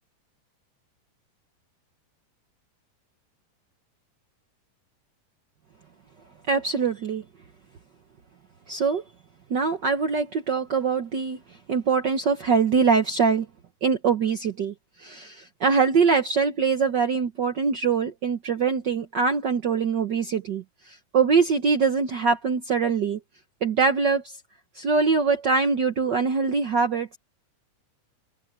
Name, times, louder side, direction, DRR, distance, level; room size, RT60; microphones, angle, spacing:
voice 1, 6.5-7.2 8.7-9.0 9.5-11.4 11.7-13.5 13.8-23.2 23.6-24.4 24.7-27.2, right 5 dB, 80° right, 0.9 m, -23 dB
open air
omnidirectional pair, 3.7 m